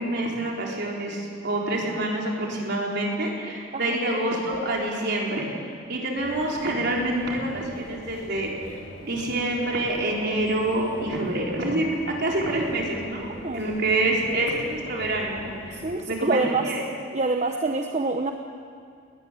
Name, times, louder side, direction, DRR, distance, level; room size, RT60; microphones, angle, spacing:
voice 1, 0.0-5.5 5.9-8.5 9.0-15.8 16.1-16.8, right 1 dB, 60° right, -2 dB, 4.1 m, -27 dB
sound 1, 6.2-16.0, equal, 65° left, 5.1 m, -44 dB
voice 2, 15.7-16.6 17.1-18.3, right 3 dB, 35° right, 4 dB, 0.9 m, -26 dB
20.0 x 14.5 x 9.9 m, 2.2 s
head